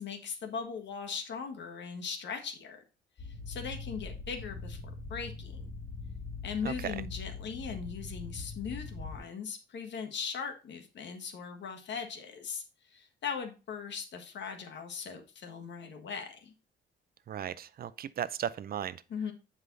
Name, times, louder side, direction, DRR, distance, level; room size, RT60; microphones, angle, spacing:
voice 1, 0.0-2.8 3.2-5.7 6.4-16.5 19.1-19.3, left 6 dB, 65° left, 1.5 m, -39 dB
sound 1, 3.2-9.2, left 4 dB, 40° left, 1.5 m, -42 dB
voice 2, 6.6-7.0 17.3-19.0, right 9 dB, 50° right, 0.6 m, -36 dB
7.7 x 5.0 x 3.9 m
cardioid pair, 90°, 20 cm